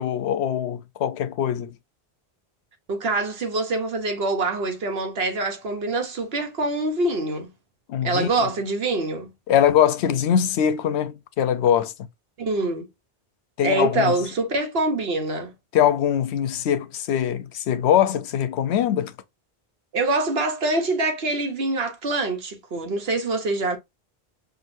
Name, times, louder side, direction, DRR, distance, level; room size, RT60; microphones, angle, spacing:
voice 1, 0.0-1.7 7.9-8.3 9.5-11.9 13.6-14.2 15.7-19.1, left 9 dB, 85° left, 0.9 m, -22 dB
voice 2, 2.9-7.5 8.0-9.3 12.4-12.9 13.6-15.5 19.9-23.8, right 2 dB, 70° right, 1.2 m, -25 dB
5.9 x 2.6 x 2.6 m
omnidirectional pair, 1.1 m